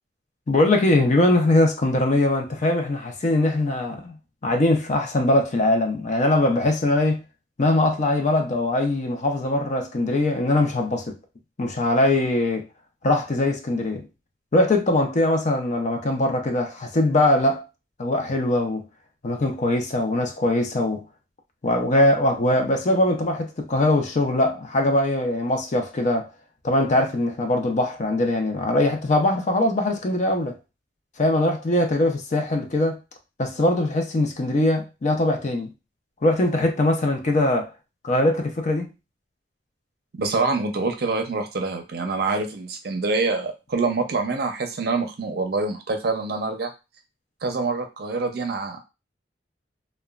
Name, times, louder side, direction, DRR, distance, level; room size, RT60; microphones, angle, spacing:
voice 1, 0.5-4.1 4.4-7.2 7.6-11.2 11.6-12.7 13.0-14.1 14.5-17.7 18.0-18.8 19.2-21.0 21.6-26.3 26.6-30.6 31.2-33.0 33.4-35.7 36.2-37.7 38.0-38.9, left 1 dB, 40° left, 0.5 m, -21 dB
voice 2, 40.2-46.7 47.4-48.8, right 3 dB, 60° right, 0.5 m, -25 dB
2.9 x 2.1 x 2.3 m
head